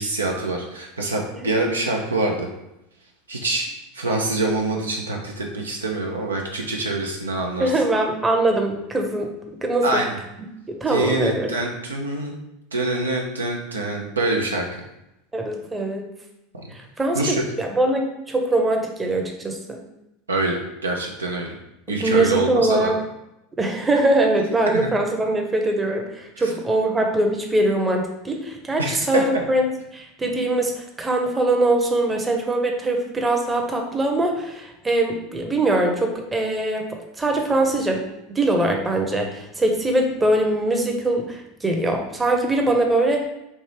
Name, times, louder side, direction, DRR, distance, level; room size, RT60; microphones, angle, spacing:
voice 1, 0.0-2.5 3.3-3.7 3.9-7.7 9.8-10.1 10.9-12.3 12.7-14.8 17.1-17.4 20.3-21.5 21.9-22.9 24.7-24.9 28.8-29.2, right 2 dB, 85° right, 1 dB, 0.6 m, -25 dB
voice 2, 7.6-9.3 9.6-10.0 10.7-11.5 15.3-16.1 16.7-19.8 22.0-23.0 23.6-29.6 29.9-36.9 37.2-38.0 38.3-43.3, right 2 dB, 15° right, 2 dB, 0.7 m, -22 dB
4.6 x 2.8 x 3.2 m, 0.87 s
figure-of-eight pair, 80°, 0 cm